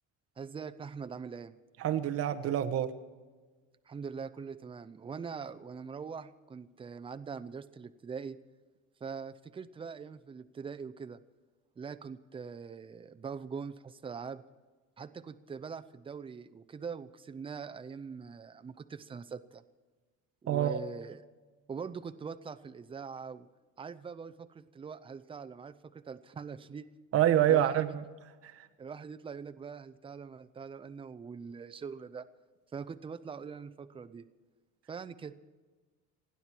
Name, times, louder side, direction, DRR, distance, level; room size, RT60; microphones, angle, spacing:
voice 1, 0.4-1.5 3.9-8.4 9.0-11.2 11.8-14.4 15.0-19.6 20.4-21.2 21.7-23.5 23.8-26.9 27.5-27.9 28.8-32.3 32.7-34.3 34.9-35.3, right 6 dB, 15° right, 11 dB, 0.6 m, -43 dB
voice 2, 1.8-2.9 20.5-20.8 27.1-28.0 28.4-28.7, right 11 dB, 50° right, 8 dB, 1.1 m, -27 dB
29.5 x 10.0 x 4.5 m, 1.3 s
cardioid pair, 160°, 31 cm